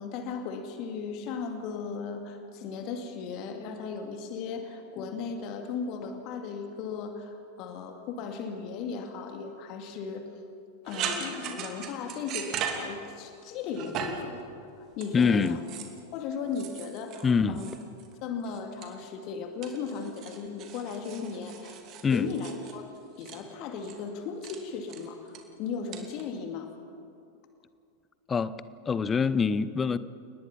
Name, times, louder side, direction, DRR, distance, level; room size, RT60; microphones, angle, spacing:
voice 1, 0.0-10.3 10.8-14.4 14.8-15.6 16.1-17.7 18.2-21.8 22.1-26.7, left 5 dB, 40° left, 2.2 m, -36 dB
sound 1, 10.9-13.4 13.7-14.3 15.0-16.0 16.5-18.2 18.4-19.3 19.6-23.4 23.8-24.0 24.4-24.6 24.9-25.4 25.9-26.2, right 7 dB, 35° right, 2.8 m, -38 dB
voice 2, 15.1-15.6 17.2-17.6 22.0-22.3 28.3-30.0, left 5 dB, 20° left, 0.8 m, -25 dB
30.0 x 19.5 x 5.9 m
figure-of-eight pair, 90°, 0 cm